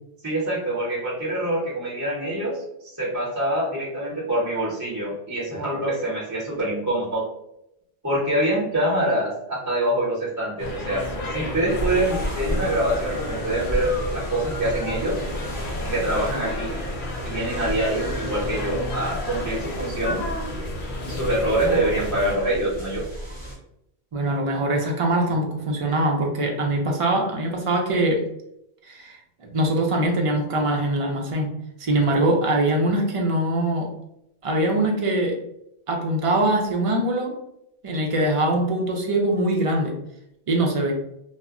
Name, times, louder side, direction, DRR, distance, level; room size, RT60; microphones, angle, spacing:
voice 1, 0.2-7.2 8.0-15.2 15.9-16.7 17.2-20.2 21.1-23.0, right 1 dB, 20° right, -7 dB, 0.8 m, -25 dB
sound 1, 10.6-22.4, left 1 dB, 60° left, 0.7 m, -32 dB
sound 2, 11.7-23.6, equal, 20° left, 0.9 m, -33 dB
voice 2, 24.1-28.2 28.8-29.2 29.5-31.5 31.8-33.9 34.4-35.4 35.9-37.4 37.8-40.0 40.5-40.9, right 1 dB, 45° right, 1 dB, 0.5 m, -22 dB
2.1 x 2.1 x 3.5 m, 0.80 s
omnidirectional pair, 1.1 m